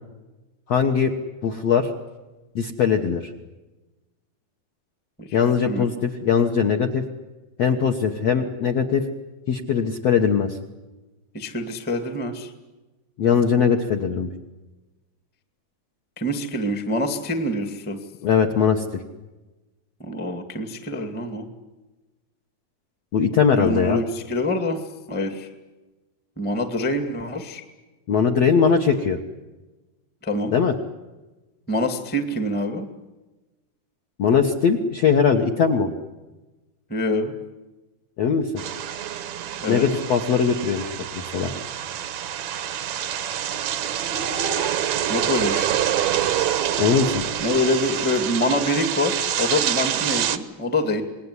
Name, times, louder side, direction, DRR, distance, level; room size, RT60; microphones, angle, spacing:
voice 1, 0.7-1.1 1.4-1.9 2.5-3.3 5.3-7.0 7.6-9.0 9.5-10.6 13.2-14.3 18.2-19.0 23.1-24.0 28.1-29.2 30.5-30.7 34.2-35.9 38.2-38.5 39.7-41.5 46.8-47.2, left 6 dB, 65° left, 2 dB, 1.6 m, -20 dB
voice 2, 11.3-12.5 16.2-18.0 20.0-21.5 23.5-24.8 25.1-25.5 26.4-27.6 30.2-30.6 31.7-32.9 36.9-37.3 39.6-39.8 45.1-45.8 47.4-51.0, left 1 dB, 5° left, 7 dB, 0.8 m, -25 dB
sound 1, 38.6-50.4, right 10 dB, 70° right, 1.8 m, -26 dB
27.0 x 20.5 x 9.9 m, 1.1 s
omnidirectional pair, 4.8 m